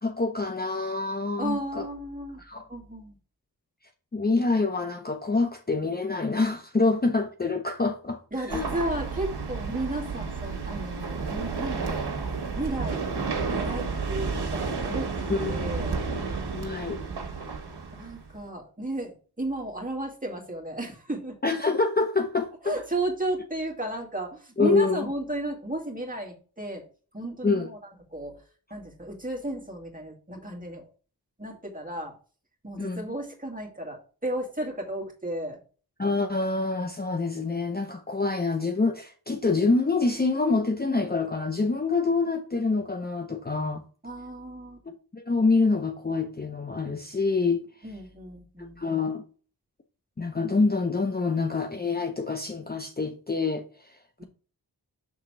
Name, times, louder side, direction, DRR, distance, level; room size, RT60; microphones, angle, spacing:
voice 1, 0.0-1.9 2.5-2.7 4.1-8.2 8.5-8.7 15.3-15.7 16.5-17.0 21.4-22.7 24.6-25.1 27.4-27.7 32.8-33.0 36.0-43.8 44.9-47.6 48.8-49.2 50.2-54.2, left 3 dB, 25° left, 0.7 m, -26 dB
voice 2, 1.4-2.4 2.7-3.2 8.3-12.1 12.5-13.0 13.5-15.1 15.5-16.0 17.9-21.4 22.6-26.8 27.1-27.8 28.1-28.4 28.7-30.9 31.4-32.1 32.6-35.6 44.0-44.9 47.8-48.8 54.2-54.3, right 1 dB, 20° right, 2.2 m, -34 dB
sound 1, 8.5-18.4, right 4 dB, 90° right, 1.3 m, -31 dB
6.2 x 3.8 x 6.0 m
wide cardioid pair, 80°, 39 cm